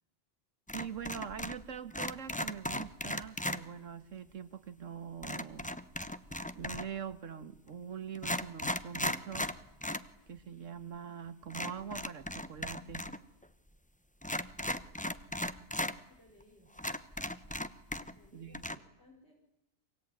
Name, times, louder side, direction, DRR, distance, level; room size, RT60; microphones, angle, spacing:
sound 1, 0.7-1.6 1.9-3.6 5.2-7.0 7.7-7.8 8.1-10.1 10.4-10.5 11.5-13.2 13.4-13.5 14.2-15.9 16.4-16.5 16.8-18.3 18.5-18.7, left 1 dB, 5° left, 0.9 m, -37 dB
voice 1, 0.7-5.7 6.5-9.5 10.3-13.1 18.3-18.6, right 8 dB, 90° right, 11 dB, 1.7 m, -43 dB
voice 2, 16.1-16.7 18.1-19.3, left 2 dB, 60° left, -2 dB, 6.1 m, -62 dB
25.0 x 24.5 x 9.6 m, 0.84 s
omnidirectional pair, 1.3 m